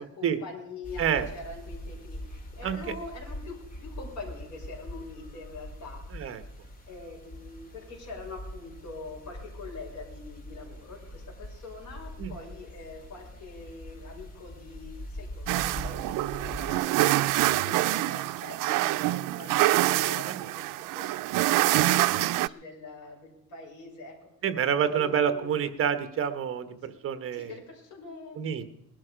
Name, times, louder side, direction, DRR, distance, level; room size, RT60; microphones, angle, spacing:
voice 1, 0.0-6.0 6.9-24.1 24.9-25.5 27.3-28.4, left 3 dB, 65° left, -3 dB, 6.3 m, -44 dB
sound 1, 0.8-16.7, equal, 25° left, 2.3 m, -43 dB
sound 2, 15.5-22.5, right 17 dB, 75° right, 0.5 m, -26 dB
voice 2, 24.4-27.5 28.4-28.7, right 8 dB, 45° right, 10 dB, 1.2 m, -28 dB
20.0 x 11.5 x 5.1 m, 0.82 s
cardioid pair, 180°, 32 cm